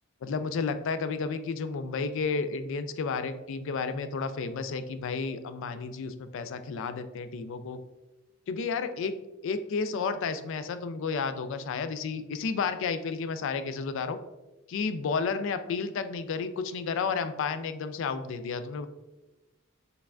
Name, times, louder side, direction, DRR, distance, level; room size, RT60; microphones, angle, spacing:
voice 1, 0.2-7.8 8.5-9.2 9.4-14.2 14.7-18.9, left 5 dB, 65° left, 11 dB, 0.3 m, -32 dB
4.5 x 3.3 x 2.4 m, 1.0 s
head